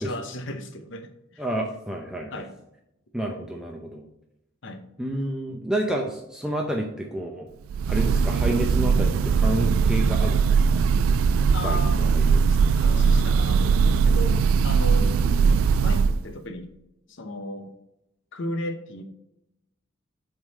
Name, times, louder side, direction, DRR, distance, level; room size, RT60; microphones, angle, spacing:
voice 1, 0.0-1.4 2.3-2.5 4.6-4.8 11.5-15.1 15.5-16.7 17.1-17.7 18.3-19.0, left 1 dB, 65° left, 7 dB, 0.8 m, -35 dB
voice 2, 1.4-2.4 3.1-4.1 5.0-7.5 7.9-10.8 11.6-12.4 15.0-15.4, right 1 dB, 5° right, 0 dB, 0.6 m, -30 dB
Breathing / Bird, 7.7-16.2, right 5 dB, 85° right, 0.3 m, -20 dB
7.9 x 3.8 x 4.1 m, 0.86 s
head